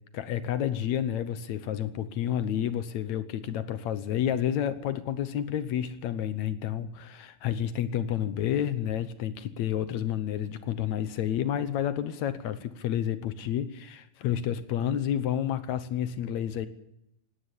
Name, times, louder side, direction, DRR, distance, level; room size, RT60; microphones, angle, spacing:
voice 1, 0.1-16.7, left 10 dB, 65° left, 13 dB, 2.0 m, -30 dB
17.5 x 16.5 x 10.0 m, 0.82 s
omnidirectional pair, 3.8 m